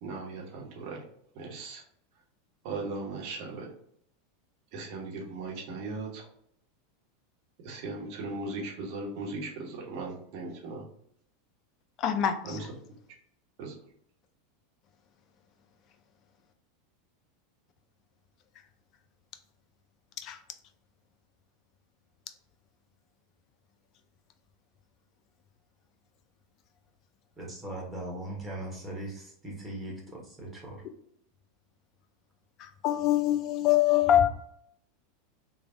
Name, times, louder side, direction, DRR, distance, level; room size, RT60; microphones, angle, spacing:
voice 1, 0.0-1.0 1.3-1.8 2.6-3.7 4.7-6.2 7.6-10.8 12.4-12.7 13.6-13.7, right 3 dB, 55° right, 0.9 m, -38 dB
voice 2, 12.0-12.6 20.2-20.4 32.6-34.3, left 11 dB, 45° left, 0.4 m, -24 dB
voice 3, 27.4-30.8, right 1 dB, 10° right, 1.3 m, -39 dB
3.2 x 2.2 x 2.7 m
hypercardioid pair, 90°, 0 cm